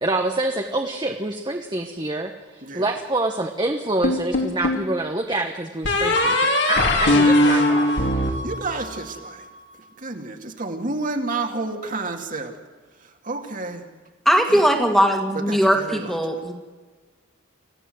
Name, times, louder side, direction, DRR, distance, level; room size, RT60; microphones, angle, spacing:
voice 1, 0.0-7.9 8.3-8.4, right 2 dB, 20° right, 3 dB, 1.2 m, -26 dB
sound 1, 4.0-4.9 5.8-9.2, left 1 dB, 60° left, 3.4 m, -20 dB
voice 2, 8.4-9.4 10.0-12.5 13.2-13.8 14.5-14.6 15.5-16.1, right 3 dB, 40° right, 4 dB, 2.4 m, -30 dB
voice 3, 14.3-16.5, equal, ahead, 3 dB, 2.2 m, -19 dB
26.5 x 15.5 x 7.9 m, 1.4 s
head